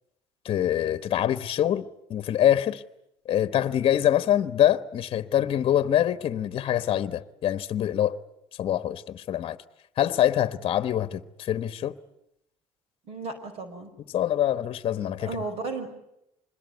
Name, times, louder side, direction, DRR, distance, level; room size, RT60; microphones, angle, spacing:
voice 1, 0.4-2.8 3.2-8.2 8.6-9.6 10.0-12.0 14.1-15.3, left 11 dB, 50° left, 1.2 m, -25 dB
voice 2, 13.1-13.9 15.2-15.9, right 3 dB, 55° right, 5.3 m, -34 dB
26.0 x 21.5 x 9.5 m
cardioid pair, 105°, 12 cm